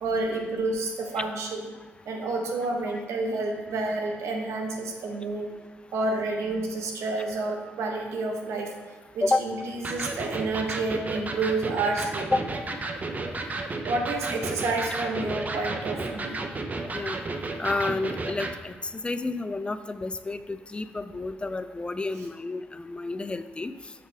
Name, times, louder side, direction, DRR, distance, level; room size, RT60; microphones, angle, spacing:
voice 1, 0.0-1.7 2.0-5.5 5.9-8.7 9.1-9.6 9.9-12.3 13.4-13.6 13.8-16.4, right 3 dB, 85° right, 2 dB, 1.1 m, -29 dB
Electric guitar, 9.8-18.6, right 3 dB, 35° right, 0.7 m, -33 dB
voice 2, 17.6-23.7, left 2 dB, 20° left, 10 dB, 0.4 m, -30 dB
6.7 x 5.7 x 3.4 m, 1.3 s
cardioid pair, 75°, 5 cm